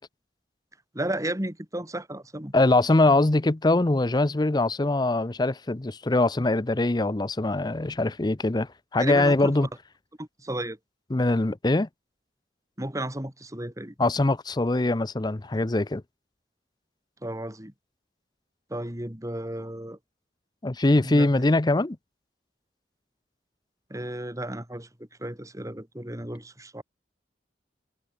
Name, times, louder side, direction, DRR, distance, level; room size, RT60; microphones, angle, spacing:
voice 1, 0.9-2.5 9.0-9.5 10.2-10.8 12.8-13.9 17.2-17.7 18.7-20.0 20.9-21.3 23.9-24.9 25.2-26.8, right 1 dB, 20° right, 3.4 m, -33 dB
voice 2, 2.5-9.7 11.1-11.9 14.0-16.0 20.6-22.0, left 2 dB, 25° left, 0.6 m, -23 dB
head